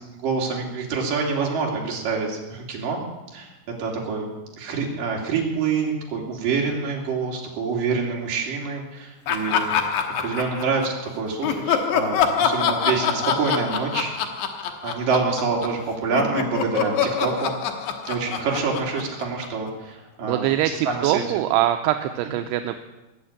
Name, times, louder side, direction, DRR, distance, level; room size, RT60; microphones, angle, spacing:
voice 1, 0.2-3.0 3.3-3.5 3.8-4.3 4.6-9.7 10.2-14.1 14.8-17.6 18.1-21.2, right 4 dB, 55° right, -1 dB, 4.1 m, -26 dB
Laughter, 9.3-11.0 11.4-15.8 16.1-19.7, left 7 dB, 85° left, 3.4 m, -25 dB
voice 2, 20.2-22.8, right 13 dB, 80° right, 7 dB, 2.6 m, -23 dB
20.5 x 7.2 x 8.6 m, 1.1 s
omnidirectional pair, 5.0 m